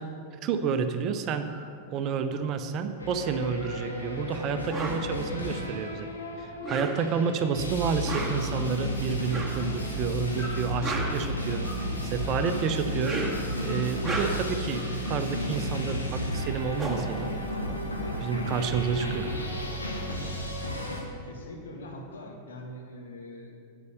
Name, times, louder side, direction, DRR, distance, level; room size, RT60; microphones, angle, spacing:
voice 1, 0.4-1.5 1.9-6.1 6.4-13.2 13.6-17.3 18.2-19.3, right 6 dB, 35° right, 9 dB, 0.7 m, -30 dB
sound 1, 1.4-1.7 2.0-2.9 3.2-4.1 4.6-7.3 7.8-8.2 8.5-9.5 10.3-11.9 12.2-14.2 14.7-15.4, left 1 dB, 30° left, 3.2 m, -48 dB
sound 2, 3.0-21.0, left 1 dB, 80° left, 1.8 m, -33 dB
sound 3, 4.7-5.0 6.5-7.2 7.9-8.5 9.3-9.6 10.6-11.8 12.8-13.5 13.9-14.6 16.1-16.2 16.4-18.1, right 3 dB, 10° right, 2.0 m, -34 dB
voice 2, 21.0-23.6, left 1 dB, 65° left, 1 dB, 1.7 m, -43 dB
9.6 x 8.1 x 6.4 m, 2.4 s
figure-of-eight pair, 90°, 0 cm